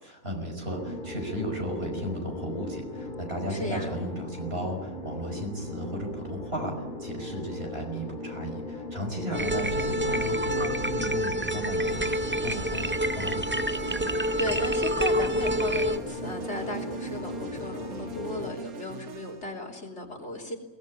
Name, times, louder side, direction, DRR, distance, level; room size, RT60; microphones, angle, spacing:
voice 1, 0.0-13.5, right 1 dB, 40° right, 3 dB, 5.5 m, -34 dB
sound 1, 0.6-18.6, left 2 dB, 35° left, 2.1 m, -38 dB
voice 2, 3.5-3.9 9.3-9.6 14.1-20.6, left 2 dB, 50° left, 0 dB, 3.5 m, -36 dB
sound 2, 9.3-16.0, equal, 15° right, 0.4 m, -28 dB
sound 3, 11.9-19.5, right 7 dB, 90° right, 1.7 m, -43 dB
22.5 x 19.0 x 9.8 m, 1.1 s
omnidirectional pair, 1.5 m